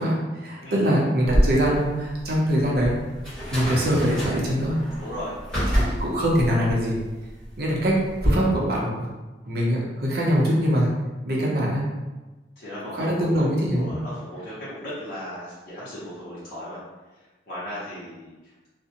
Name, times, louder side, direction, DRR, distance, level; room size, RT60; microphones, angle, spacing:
voice 1, 0.0-3.0 3.5-4.8 5.8-7.0 7.6-9.1 9.5-10.9 11.3-11.9 12.9-14.0, equal, 60° right, -3 dB, 0.6 m, -23 dB
sound 1, 1.3-8.3, equal, 5° left, 1.2 m, -28 dB
voice 2, 5.0-5.4 12.6-13.3 13.7-16.8 17.5-18.5, equal, 55° left, -12 dB, 0.8 m, -36 dB
2.5 x 2.1 x 2.7 m, 1.2 s
head